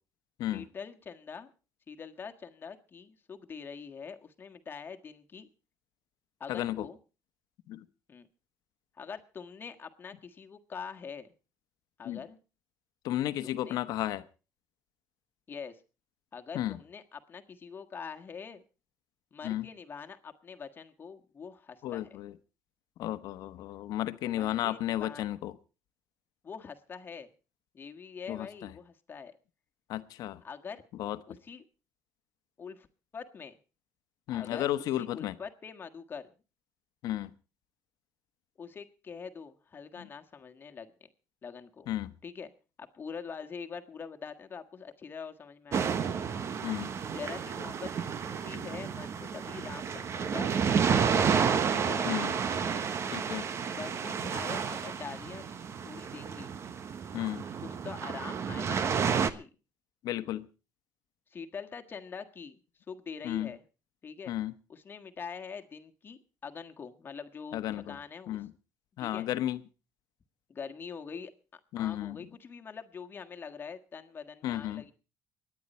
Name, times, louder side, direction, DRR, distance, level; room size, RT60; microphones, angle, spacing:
voice 1, 0.5-1.5 1.9-5.5 6.4-7.0 8.1-8.3 9.0-11.3 12.0-12.4 13.4-13.8 15.5-15.8 16.3-18.6 19.3-22.2 24.3-25.2 26.4-27.3 27.7-29.3 30.4-30.8 31.3-31.6 32.6-32.9 33.1-33.6 34.3-36.3 38.6-41.1 41.4-41.9 42.2-42.5 42.8-46.0 47.1-51.3 51.7-52.3 52.6-52.9 53.7-55.5 55.8-56.5 57.6-59.5 61.3-62.6 62.9-63.6 64.0-64.3 64.7-68.4 69.0-69.3 70.5-74.9, left 6 dB, 30° left, 5 dB, 1.6 m, -44 dB
voice 2, 6.5-6.9 7.7-7.8 12.0-12.2 13.0-14.2 16.5-16.8 19.4-19.7 21.8-22.3 23.0-25.5 28.3-28.7 29.9-30.4 31.0-31.2 34.3-35.4 37.0-37.3 40.0-40.1 41.9-42.1 46.6-46.9 52.1-52.3 53.1-53.5 57.1-57.4 60.0-60.5 63.2-63.5 64.3-64.5 67.5-68.0 68.3-68.5 69.0-69.6 71.7-72.2 74.4-74.8, left 13 dB, 70° left, 11 dB, 1.1 m, -33 dB
sound 1, 45.7-59.3, right 6 dB, 45° right, 1.1 m, -31 dB
24.5 x 9.9 x 4.3 m, 0.34 s
cardioid pair, 110°, 7 cm